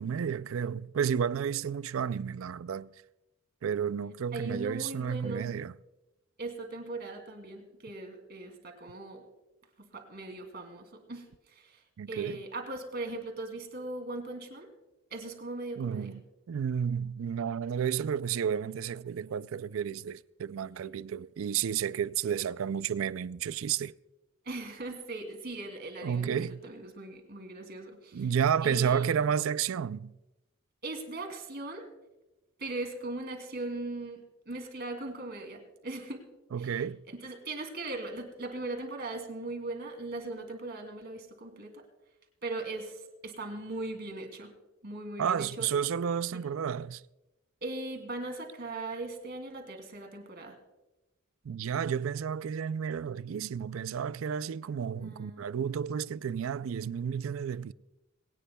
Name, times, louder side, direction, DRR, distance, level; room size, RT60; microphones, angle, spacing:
voice 1, 0.0-2.9 3.6-5.7 12.0-12.4 15.8-16.2 16.5-23.9 26.0-26.6 28.1-30.1 36.5-37.0 45.2-47.0 51.4-57.7, right 7 dB, 75° right, 0.4 m, -31 dB
voice 2, 4.3-5.5 6.4-9.2 9.8-14.7 15.1-16.2 24.4-28.3 28.6-29.3 30.8-31.9 32.6-36.3 36.6-36.8 37.2-41.8 42.4-44.5 44.8-45.7 46.3-46.5 47.6-50.6 54.9-55.5, right 2 dB, 50° right, 2.7 m, -39 dB
22.0 x 18.0 x 2.3 m
head